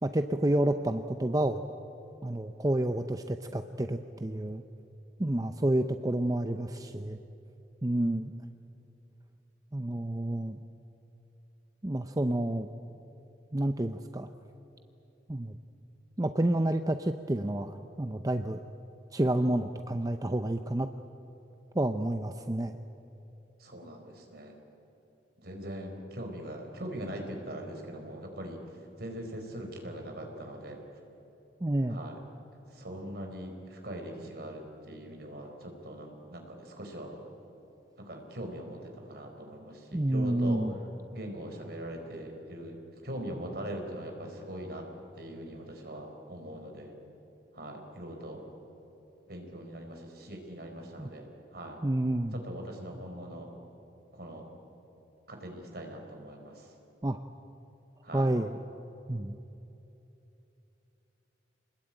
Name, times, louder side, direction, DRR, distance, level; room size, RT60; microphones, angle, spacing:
voice 1, 0.0-1.6 2.2-4.6 5.2-7.2 7.8-8.3 9.7-10.6 11.8-12.7 13.5-14.3 15.3-15.6 16.2-18.6 19.1-20.9 21.7-22.8 31.6-32.0 39.9-40.7 51.0-51.1 51.8-52.4 57.0-57.2 58.1-58.6 59.1-59.4, right 1 dB, 20° right, 8 dB, 0.6 m, -29 dB
voice 2, 23.6-24.5 25.4-28.6 29.0-30.8 31.9-32.2 32.7-37.2 38.0-40.6 41.1-42.8 43.0-44.8 45.1-46.9 47.5-48.4 49.3-51.8 52.4-53.5 54.1-54.4 55.3-56.7 58.0-58.3, right 1 dB, 60° right, 3 dB, 4.6 m, -41 dB
27.5 x 20.5 x 9.1 m, 3.0 s
head